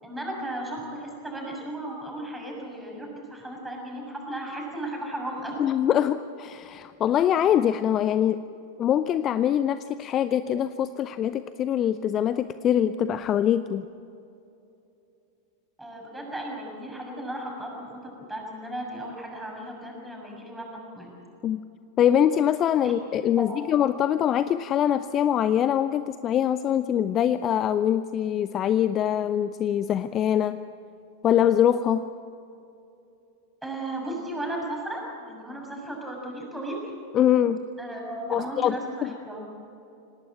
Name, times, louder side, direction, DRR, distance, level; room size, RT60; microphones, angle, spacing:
voice 1, 0.0-5.6 15.8-21.1 22.8-22.9 23.4-23.7 33.6-36.9 37.8-39.5, right 1 dB, 5° right, -1 dB, 7.0 m, -35 dB
voice 2, 5.6-8.4 8.8-13.9 21.4-21.6 22.0-30.6 31.2-32.0 37.1-37.6 38.3-38.8 39.0-39.1, left 10 dB, 30° left, 14 dB, 0.6 m, -23 dB
27.5 x 18.5 x 8.7 m, 2.8 s
figure-of-eight pair, 90°, 0 cm